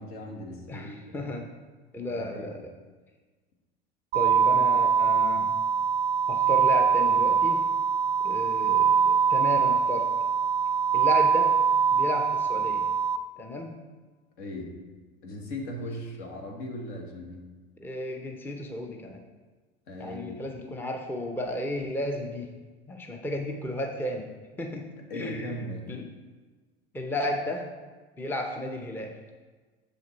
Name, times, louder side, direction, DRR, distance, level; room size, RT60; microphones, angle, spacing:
voice 1, 0.0-1.3 2.1-2.6 14.4-14.8 15.2-17.5 19.9-20.4 25.1-25.9, left 1 dB, 60° left, 0 dB, 1.5 m, -38 dB
voice 2, 0.7-1.5 1.9-2.7 4.1-5.5 6.3-7.6 8.2-10.1 10.9-11.5 11.9-12.9 13.4-13.8 17.8-19.2 20.0-22.5 22.9-24.3 24.6-25.5 25.9-26.1 26.9-27.7 28.2-29.2, left 1 dB, 5° left, 3 dB, 0.6 m, -33 dB
sound 1, 4.1-13.2, right 6 dB, 85° right, 0.5 m, -23 dB
6.9 x 5.1 x 4.0 m, 1.3 s
hypercardioid pair, 90°, 30 cm